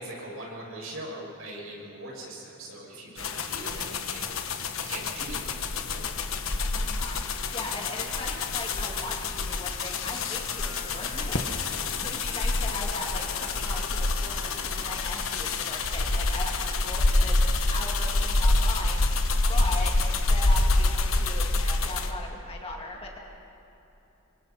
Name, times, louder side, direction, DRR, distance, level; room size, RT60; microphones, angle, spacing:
voice 1, 0.0-6.1, right 1 dB, 70° right, -3 dB, 6.6 m, -41 dB
sound 1, 3.2-22.1, left 2 dB, 65° left, 1.2 m, -27 dB
voice 2, 6.7-17.5 17.7-23.2, left 2 dB, 25° left, -1 dB, 2.3 m, -39 dB
sound 2, 7.2-15.2, right 1 dB, 30° right, 6.1 m, -50 dB
27.5 x 24.0 x 4.3 m, 2.9 s
head